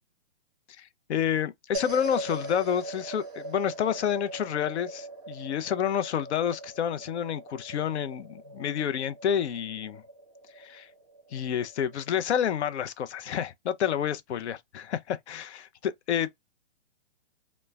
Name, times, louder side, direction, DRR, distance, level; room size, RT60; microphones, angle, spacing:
voice 1, 1.1-10.0 10.6-10.9 11.3-16.4, left 9 dB, 70° left, 0.5 m, -29 dB
sound 1, 1.7-12.2, right 2 dB, ahead, 0.3 m, -41 dB
3.0 x 2.1 x 2.2 m
hypercardioid pair, 155°, 35 cm